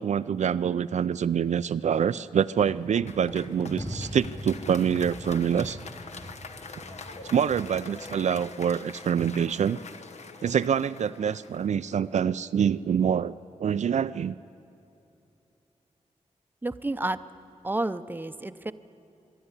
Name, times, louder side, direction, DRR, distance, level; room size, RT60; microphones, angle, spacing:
voice 1, 0.0-5.8 7.3-9.8 10.4-13.3 13.6-14.3, right 8 dB, 75° right, 13 dB, 0.4 m, -26 dB
sound 1, 2.6-8.4, left 1 dB, 35° left, 3.7 m, -41 dB
Applause, 3.1-12.4, left 4 dB, 65° left, 1.2 m, -45 dB
voice 2, 16.6-17.2 17.6-18.7, right 2 dB, 15° right, 11 dB, 0.7 m, -30 dB
24.0 x 11.0 x 9.7 m, 2.8 s
wide cardioid pair, 80°, 12 cm